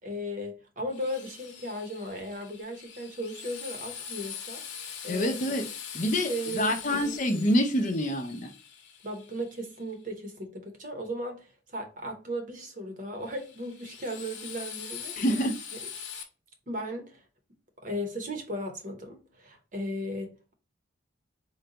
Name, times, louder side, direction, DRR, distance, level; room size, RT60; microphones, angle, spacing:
voice 1, 0.0-4.6 5.0-5.4 6.0-7.0 9.0-15.1 16.7-17.2 17.8-20.5, equal, 45° right, 0.8 m, -36 dB
Drill, 0.9-9.8 13.2-16.2, left 7 dB, 70° left, 0.9 m, -42 dB
voice 2, 5.1-5.7 5.9-8.5 15.2-15.5, equal, 40° left, 0.6 m, -26 dB
3.8 x 2.3 x 3.8 m
head